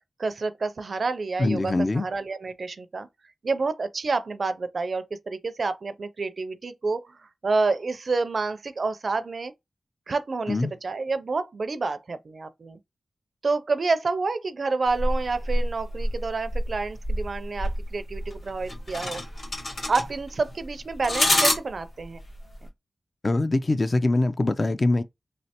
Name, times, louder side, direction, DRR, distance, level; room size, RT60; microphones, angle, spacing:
voice 1, 0.2-3.1 3.4-9.5 10.1-12.8 13.4-19.2 19.9-22.2, right 3 dB, 60° right, 0.4 m, -28 dB
voice 2, 1.4-2.1 10.5-10.7 23.2-25.0, left 2 dB, 35° left, 0.3 m, -23 dB
sound 1, 14.9-22.7, left 1 dB, 70° left, 1.5 m, -28 dB
3.1 x 2.9 x 2.8 m
wide cardioid pair, 85°, 0 cm